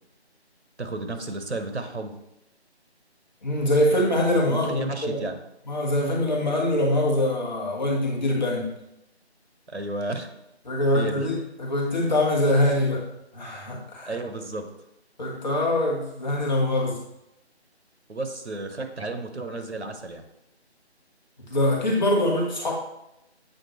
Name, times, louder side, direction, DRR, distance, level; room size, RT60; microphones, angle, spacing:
voice 1, 0.8-2.2 4.5-5.4 9.7-10.3 10.9-11.3 14.0-14.7 18.1-20.2, right 2 dB, 80° right, 5 dB, 1.1 m, -32 dB
voice 2, 3.4-5.2 5.7-8.7 10.6-13.1 13.3-14.1 15.2-17.0 21.5-22.7, left 1 dB, 40° left, -2 dB, 1.4 m, -23 dB
7.7 x 4.2 x 3.1 m, 0.85 s
figure-of-eight pair, 160°, 33 cm